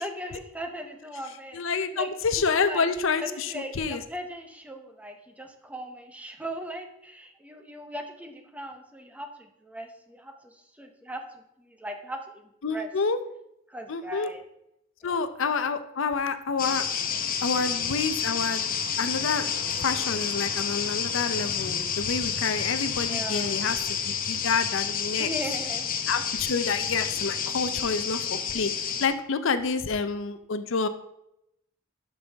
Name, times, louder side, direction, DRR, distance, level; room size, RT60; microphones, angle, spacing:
voice 1, 0.0-2.1 2.4-2.9 3.2-12.9 13.7-14.4 15.0-15.2 23.1-23.6 25.2-26.0, equal, 5° right, 5 dB, 0.8 m, -39 dB
voice 2, 1.5-4.0 12.6-13.2 13.9-14.3 15.0-16.8 17.4-18.6 19.0-25.3 26.1-28.7 29.0-30.9, left 5 dB, 65° left, 11 dB, 0.6 m, -28 dB
sound 1, 16.6-29.1, left 7 dB, 45° left, 0.9 m, -29 dB
11.5 x 5.5 x 3.5 m, 0.81 s
head